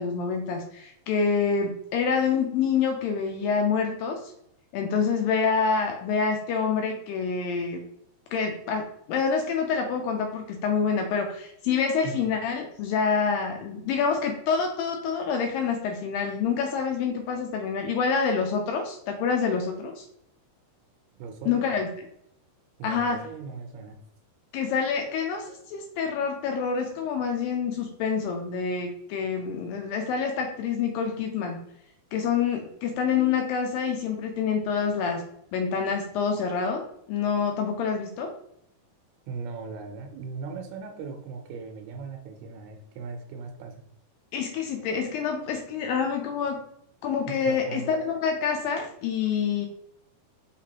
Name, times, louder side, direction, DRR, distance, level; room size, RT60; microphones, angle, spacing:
voice 1, 0.0-4.3 4.7-7.8 8.3-20.1 21.5-21.9 22.8-23.2 24.5-31.6 32.1-35.2 35.5-38.4 44.3-46.6 47.0-49.7, left 6 dB, 85° left, 3 dB, 2.0 m, -27 dB
voice 2, 21.2-21.7 22.8-24.0 39.3-43.7 47.3-47.9, right 4 dB, 80° right, 4 dB, 2.6 m, -38 dB
5.8 x 3.2 x 2.8 m, 0.75 s
omnidirectional pair, 4.5 m